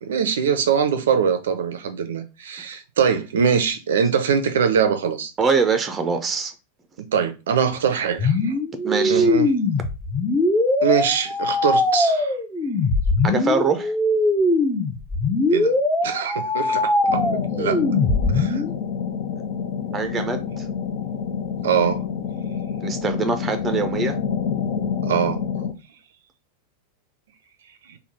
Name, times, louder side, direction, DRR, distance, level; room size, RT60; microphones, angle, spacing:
voice 1, 0.0-5.3 7.1-8.5 9.1-9.5 10.8-12.4 15.5-15.7 16.0-17.8 18.3-18.6 21.6-22.0 25.1-25.4, right 7 dB, 60° right, 0.5 m, -22 dB
voice 2, 5.4-6.5 8.8-9.3 13.2-13.9 19.9-20.7 22.8-24.2, right 4 dB, 20° right, 0.6 m, -23 dB
sound 1, 8.2-18.7, left 2 dB, 15° left, 0.8 m, -21 dB
sound 2, 17.1-25.7, left 7 dB, 50° left, 0.6 m, -27 dB
3.5 x 2.2 x 4.1 m
figure-of-eight pair, 90°, 0 cm